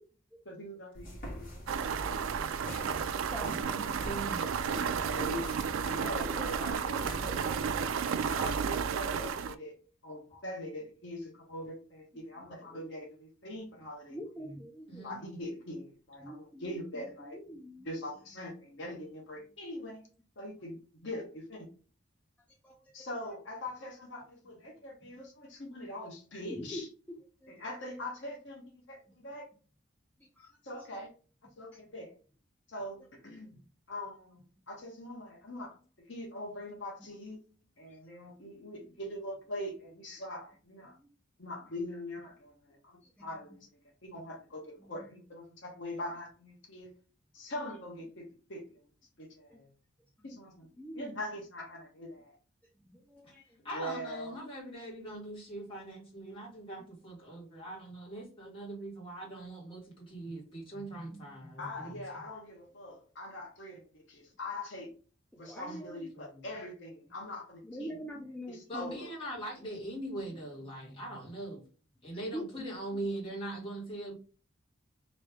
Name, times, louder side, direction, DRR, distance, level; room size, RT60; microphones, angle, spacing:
voice 1, 0.4-1.5 4.6-9.8 10.0-14.2 15.0-17.4 17.8-20.1 20.4-21.7 22.9-26.9 27.5-29.5 30.6-31.1 31.6-32.2 32.7-33.6 33.9-37.4 37.8-41.0 41.4-43.7 44.0-46.9 47.3-48.8 49.2-49.7 50.2-52.4 53.7-54.3 61.6-64.9 65.4-67.9 68.5-69.1, left 1 dB, 60° left, 1.0 m, -42 dB
sound 1, 0.9-7.9, equal, 40° left, 1.4 m, -45 dB
sound 2, 1.7-9.6, right 6 dB, 70° right, 0.3 m, -32 dB
voice 2, 2.2-3.9 12.4-12.8 14.1-15.1 16.2-16.6 17.3-18.0 22.6-23.1 25.0-25.1 26.5-26.8 27.1-27.2 27.4-27.5 30.4-30.5 37.9-38.0 40.9-41.1 43.0-43.3 44.1-44.2 44.8-45.1 49.5-49.6 50.2-50.3 50.8-51.2 52.8-53.5 60.7-62.0 65.4-66.1 67.6-69.1 70.8-71.3 72.3-72.7, equal, 5° left, 0.5 m, -45 dB
voice 3, 3.4-4.6 10.3-10.4 14.9-15.2 53.2-53.3 53.6-62.0 65.6-65.8 66.1-66.4 68.7-71.6 72.0-74.1, right 1 dB, 25° left, 1.5 m, -41 dB
3.1 x 2.7 x 3.3 m
head